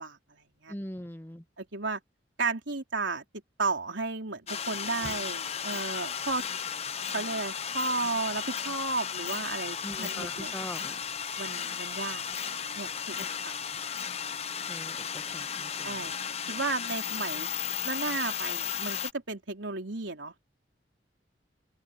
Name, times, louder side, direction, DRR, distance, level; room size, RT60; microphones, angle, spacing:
voice 1, 0.0-0.7 1.6-2.0 2.4-3.2 3.6-6.4 7.1-10.5 11.4-12.3 12.8-13.6 15.8-17.5 17.8-20.4, right 3 dB, 85° right, 3.6 m, -34 dB
voice 2, 0.7-1.4 9.8-11.0 13.7-13.8 14.7-16.1, left 1 dB, 10° left, 1.2 m, -42 dB
sound 1, 4.5-19.1, left 7 dB, 35° left, 0.8 m, -35 dB
open air
head